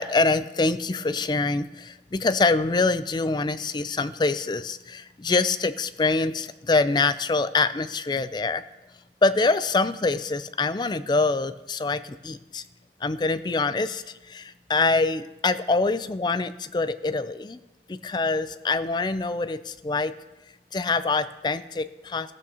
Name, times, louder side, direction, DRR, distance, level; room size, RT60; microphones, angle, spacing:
voice 1, 0.0-8.6 9.2-12.6 13.0-17.6 17.9-20.1 20.7-22.3, left 3 dB, 25° left, 13 dB, 0.4 m, -25 dB
14.5 x 13.0 x 2.8 m, 1.0 s
head